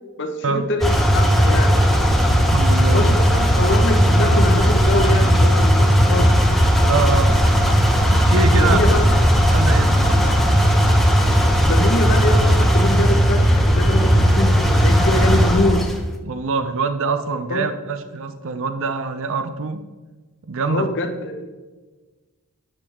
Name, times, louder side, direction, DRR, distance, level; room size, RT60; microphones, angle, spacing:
voice 1, 0.2-1.8 2.9-6.3 8.6-9.0 11.7-15.8 17.5-17.7 20.7-21.5, left 2 dB, 55° left, 3 dB, 1.2 m, -24 dB
sound 1, 0.8-15.9, equal, ahead, 0.8 m, -16 dB
voice 2, 2.3-3.0 6.8-7.3 8.1-8.8 9.5-10.3 16.2-19.8 20.4-20.9, right 4 dB, 60° right, 9 dB, 0.6 m, -24 dB
9.7 x 7.3 x 3.6 m, 1.2 s
head